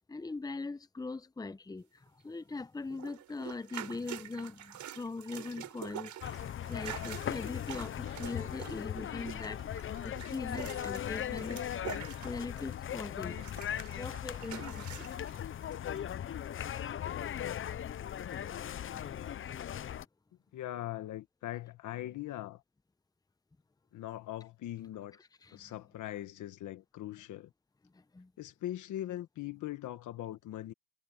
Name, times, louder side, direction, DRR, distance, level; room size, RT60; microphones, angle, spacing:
voice 1, 0.1-6.1 6.7-11.6 12.2-13.4 14.0-15.4 25.4-25.8 27.9-28.3, left 3 dB, 10° left, 0.8 m, -41 dB
sound 1, 2.9-12.9 13.2-15.4 16.0-16.1, right 11 dB, 70° right, 4.3 m, -46 dB
sound 2, 6.2-20.1, left 10 dB, 45° left, 0.6 m, -38 dB
voice 2, 20.5-22.6 23.9-25.2 25.5-27.5 28.4-30.7, left 13 dB, 80° left, 1.3 m, -41 dB
cardioid pair, 90°, 30 cm